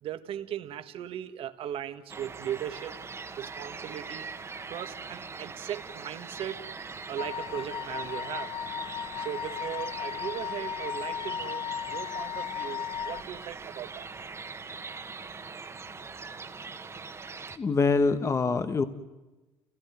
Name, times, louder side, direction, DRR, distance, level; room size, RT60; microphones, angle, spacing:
voice 1, 0.0-3.0 3.4-4.3 4.7-8.5 8.9-14.1, right 10 dB, 60° right, 8 dB, 1.6 m, -38 dB
sound 1, 2.1-17.6, right 4 dB, 25° right, 1.6 m, -42 dB
Wind instrument woodwind instrument, 7.2-13.3, left 10 dB, 70° left, 0.9 m, -36 dB
voice 2, 17.6-18.8, left 4 dB, 30° left, 10 dB, 1.3 m, -24 dB
29.0 x 17.0 x 9.5 m, 1.1 s
cardioid pair, 100°, 10 cm